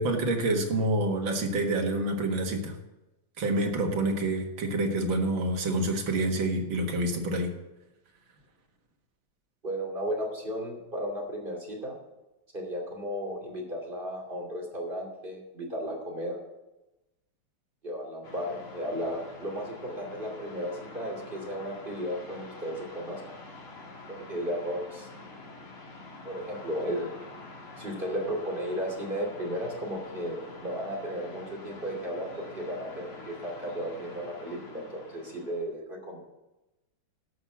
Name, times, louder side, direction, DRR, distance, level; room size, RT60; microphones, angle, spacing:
voice 1, 0.0-2.8 3.4-7.5, right 1 dB, 60° right, 2 dB, 2.2 m, -27 dB
voice 2, 9.6-12.0 12.5-16.4 17.8-23.2 24.1-25.1 26.2-27.1 27.8-36.2, equal, 25° right, -1 dB, 2.8 m, -34 dB
sound 1, 18.2-35.6, left 2 dB, 70° left, 2.9 m, -47 dB
12.0 x 6.3 x 7.2 m, 1.0 s
omnidirectional pair, 2.4 m